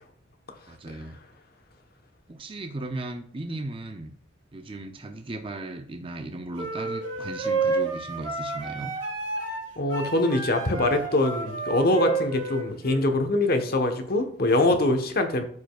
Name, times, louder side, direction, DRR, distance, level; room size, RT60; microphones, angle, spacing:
voice 1, 0.7-1.2 2.3-4.1 4.5-8.9, right 2 dB, 25° right, 5 dB, 0.5 m, -36 dB
sound 1, 6.6-13.1, right 4 dB, 80° right, 3.1 m, -30 dB
voice 2, 9.8-15.4, left 2 dB, 50° left, 6 dB, 1.1 m, -23 dB
13.5 x 5.0 x 2.4 m, 0.62 s
head